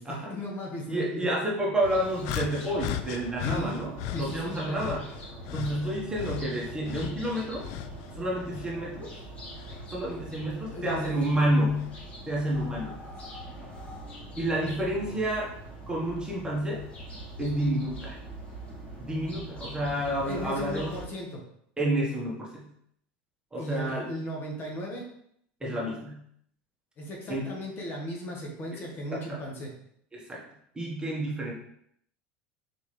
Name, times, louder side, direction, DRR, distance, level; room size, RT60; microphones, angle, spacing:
voice 1, 0.0-1.3 3.4-3.8 4.1-5.0 10.7-11.2 13.0-13.7 15.1-15.2 17.5-17.6 20.3-21.4 23.6-25.1 27.0-29.7, equal, 40° left, -1 dB, 1.3 m, -37 dB
voice 2, 0.9-5.1 5.5-7.7 8.1-9.1 9.9-11.9 12.3-12.9 14.4-15.5 15.9-16.8 17.4-18.2 19.0-20.9 21.8-22.7 23.5-24.1 25.6-26.2 27.3-27.5 29.1-29.4 30.1-30.4 30.7-31.5, right 1 dB, 15° right, -3 dB, 1.3 m, -29 dB
sound 1, 1.8-21.1, right 1 dB, 25° left, 1.8 m, -43 dB
sound 2, 2.2-4.3 4.7-8.1 8.4-9.9 10.7-10.8 11.8-11.9, left 12 dB, 65° left, 0.4 m, -37 dB
4.3 x 3.5 x 3.2 m, 0.69 s
supercardioid pair, 100°, 6 cm